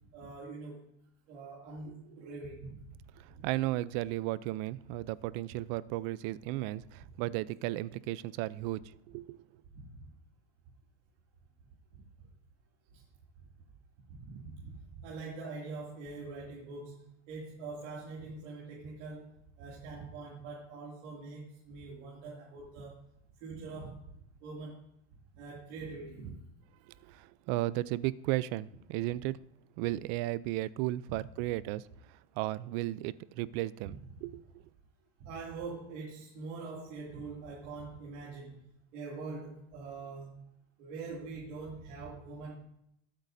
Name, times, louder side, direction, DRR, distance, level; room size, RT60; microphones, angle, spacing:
voice 1, 0.1-0.9 1.3-2.8 3.4-3.5 9.7-10.1 11.9-12.3 12.9-13.0 14.1-19.3 19.6-23.0 23.4-24.0 24.4-24.8 25.3-26.4 33.8-34.0 35.2-40.4 40.8-42.5, right 3 dB, 75° right, 2.6 m, -44 dB
voice 2, 3.2-9.4 27.0-29.4 29.8-31.8 32.1-34.0 34.2-34.4, right 16 dB, 55° right, 0.5 m, -34 dB
20.5 x 8.4 x 2.6 m
supercardioid pair, 150°, 37 cm